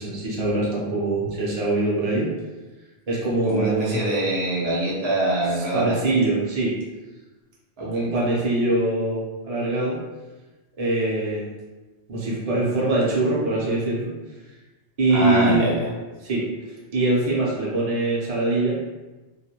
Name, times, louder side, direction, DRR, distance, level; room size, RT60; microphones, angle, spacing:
voice 1, 0.0-2.3 3.1-4.0 5.6-6.8 7.8-10.0 10.8-11.5 12.1-14.1 15.0-15.7 16.2-16.5 16.9-18.8, right 2 dB, 40° right, -5 dB, 0.6 m, -23 dB
voice 2, 3.4-6.0 7.8-8.4 15.1-15.9, right 1 dB, 70° right, -5 dB, 0.9 m, -24 dB
2.4 x 2.1 x 2.8 m, 1.2 s
omnidirectional pair, 1.1 m